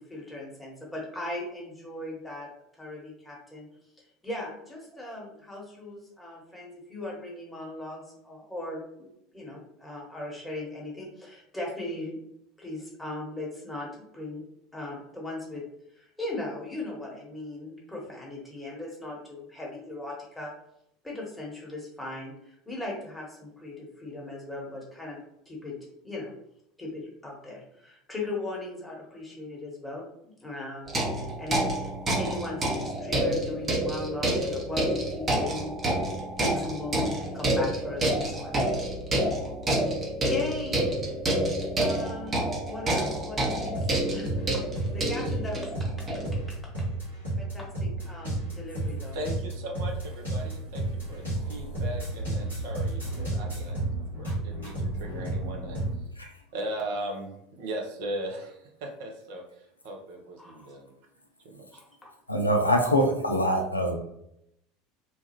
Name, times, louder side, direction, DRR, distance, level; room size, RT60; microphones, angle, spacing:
voice 1, 0.0-2.5 2.7-3.7 4.2-12.2 12.6-14.4 14.7-15.7 15.9-20.5 21.0-25.2 25.5-25.8 26.0-26.3 26.8-31.0 31.2-31.9 32.2-35.7 36.4-38.6 40.3-40.9 41.8-45.7 47.4-49.2 60.4-60.7 61.7-62.1, left 2 dB, 10° left, -3 dB, 1.1 m, -38 dB
sound 1, 30.9-46.5, right 1 dB, 30° right, 0.8 m, -28 dB
sound 2, 43.7-56.0, right 2 dB, 90° right, 1.4 m, -32 dB
voice 2, 49.1-53.8 54.2-55.8 56.2-59.4 59.8-60.9 61.4-61.8, right 1 dB, 60° right, 2 dB, 0.6 m, -38 dB
voice 3, 62.3-64.0, equal, 90° left, 3 dB, 0.4 m, -24 dB
3.1 x 2.2 x 2.9 m, 0.77 s
figure-of-eight pair, 75°, 0 cm